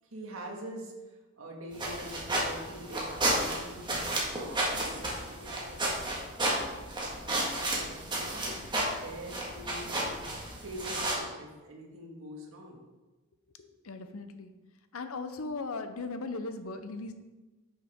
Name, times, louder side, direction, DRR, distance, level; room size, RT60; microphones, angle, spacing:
voice 1, 0.0-3.9 4.2-6.6 7.0-8.5 8.9-10.0 10.5-12.8, right 1 dB, 70° right, 0 dB, 1.8 m, -45 dB
sound 1, 1.7-11.1, right 1 dB, 20° right, 1.7 m, -32 dB
voice 2, 13.6-14.5 14.9-17.1, left 3 dB, 85° left, 9 dB, 0.8 m, -38 dB
10.0 x 6.6 x 3.7 m, 1.2 s
head